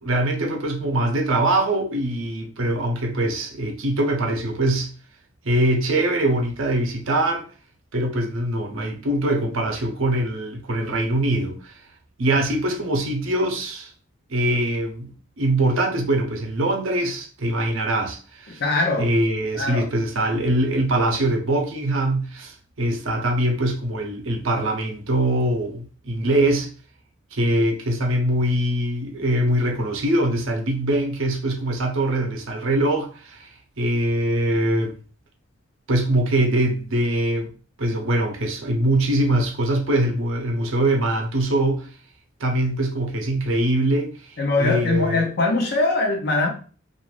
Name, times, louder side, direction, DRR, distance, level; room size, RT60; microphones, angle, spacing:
voice 1, 0.0-4.9 5.4-7.4 7.9-11.7 12.2-13.9 14.3-18.6 19.0-26.7 27.3-33.5 33.8-35.0 35.9-37.5 37.8-41.9 42.4-45.3, right 1 dB, 70° right, 0.7 m, -23 dB
voice 2, 18.5-19.1 19.5-19.9 44.4-46.5, left 3 dB, 50° left, 0.6 m, -22 dB
2.5 x 2.3 x 3.1 m
head